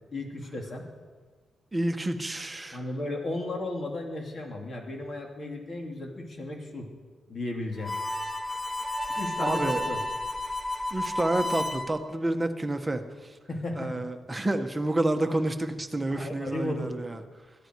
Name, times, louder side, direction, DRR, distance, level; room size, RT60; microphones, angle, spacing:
voice 1, 0.1-0.9 2.7-6.9 7.3-7.9 9.1-10.0 13.5-14.0 16.1-16.9, left 2 dB, 40° left, 1 dB, 3.2 m, -34 dB
voice 2, 1.7-2.8 9.4-9.8 10.9-13.0 13.8-17.2, right 1 dB, 15° right, 5 dB, 1.4 m, -29 dB
Harmonica, 7.8-11.9, left 1 dB, ahead, 1.8 m, -31 dB
20.5 x 14.0 x 4.8 m, 1.5 s
cardioid pair, 100°, 0 cm